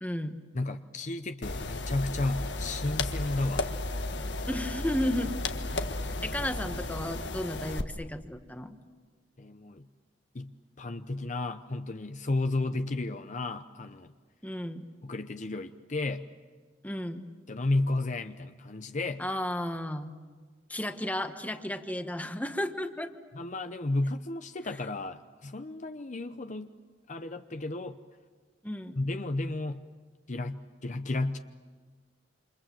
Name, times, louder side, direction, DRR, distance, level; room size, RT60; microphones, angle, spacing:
voice 1, 0.0-0.4 4.5-5.3 5.7-8.8 14.4-14.8 16.8-17.3 19.2-20.2 20.7-23.1 28.6-29.0, left 1 dB, 10° left, 7 dB, 1.3 m, -33 dB
voice 2, 0.5-3.7 9.4-9.9 10.3-10.5 10.8-14.1 15.0-16.2 17.5-19.2 23.3-26.7 27.1-28.0 28.9-29.8 30.3-31.4, left 2 dB, 45° left, 8 dB, 0.8 m, -33 dB
sound 1, 1.4-7.8, left 2 dB, 80° left, 1.5 m, -34 dB
28.5 x 27.0 x 7.7 m, 1.5 s
head